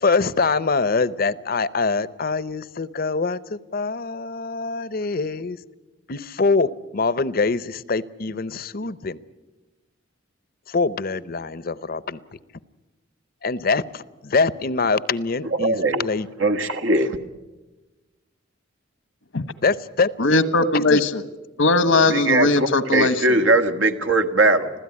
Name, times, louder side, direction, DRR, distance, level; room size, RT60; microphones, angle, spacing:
voice 1, 0.0-5.6 6.1-9.2 10.7-12.2 13.4-16.3 19.6-20.1 20.7-21.0, left 4 dB, 50° left, 18 dB, 0.7 m, -24 dB
voice 2, 15.4-16.1 16.4-17.2 22.1-24.7, right 2 dB, 85° right, 7 dB, 1.7 m, -20 dB
voice 3, 20.2-21.2 21.6-23.1, left 2 dB, 85° left, 13 dB, 1.3 m, -19 dB
26.0 x 16.0 x 9.7 m, 1.2 s
head